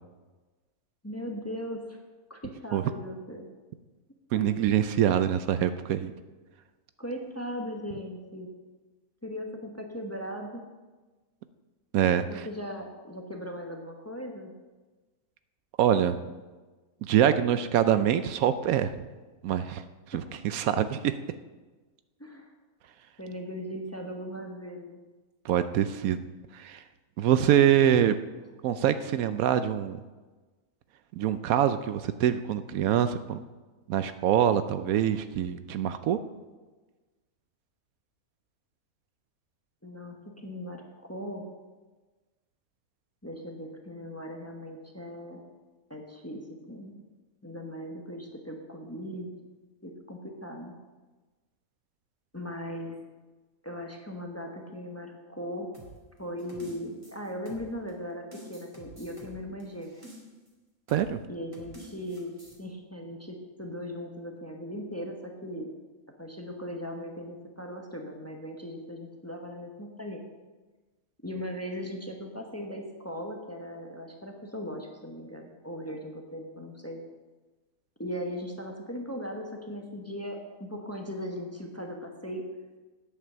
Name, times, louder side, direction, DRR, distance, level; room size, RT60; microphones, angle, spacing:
voice 1, 1.0-2.0 2.3-3.5 4.3-4.4 7.0-8.5 9.2-10.6 12.2-14.5 20.1-20.2 22.2-22.5 23.2-25.0 39.8-41.5 43.2-45.4 45.9-46.4 46.7-47.0 47.4-49.3 49.8-50.8 52.3-53.0 53.6-55.7 56.2-60.0 61.3-62.3 62.6-65.7 66.2-70.2 71.2-77.0 78.0-82.4, equal, 10° left, 2 dB, 1.0 m, -38 dB
voice 2, 4.3-6.1 11.9-12.2 15.8-16.2 17.0-19.1 19.4-21.1 25.4-26.2 26.5-26.8 27.2-28.2 28.6-30.0 31.2-33.4 33.9-36.2 60.9-61.2, right 10 dB, 75° right, 11 dB, 1.0 m, -25 dB
sound 1, 55.7-57.9 58.3-60.5 60.9-61.1 61.5-62.6, right 1 dB, 20° right, 2.3 m, -49 dB
9.3 x 8.0 x 6.7 m, 1.3 s
omnidirectional pair, 1.5 m